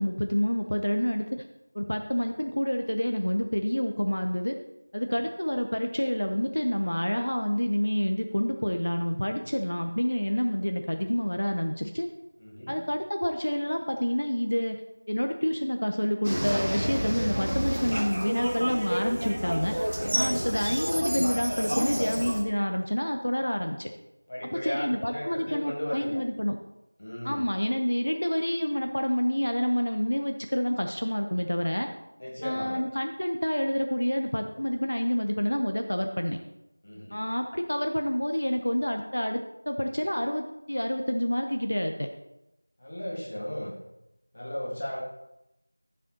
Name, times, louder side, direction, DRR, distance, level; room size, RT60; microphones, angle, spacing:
voice 1, 0.0-1.4 1.7-4.6 4.9-12.1 12.7-14.8 15.1-19.7 20.1-23.9 24.5-26.6 27.2-31.9 32.4-36.4 37.1-42.1, equal, 65° left, 4 dB, 0.8 m, -28 dB
voice 2, 12.4-12.8 20.1-20.5 21.8-22.2 24.3-26.2 27.0-27.5 32.2-32.8 36.8-37.2 42.8-43.7 44.3-45.0, equal, 25° left, -3 dB, 1.5 m, -36 dB
sound 1, 16.2-22.4, equal, 55° right, 1.4 m, -29 dB
13.5 x 7.4 x 2.9 m, 0.91 s
figure-of-eight pair, 180°, 0 cm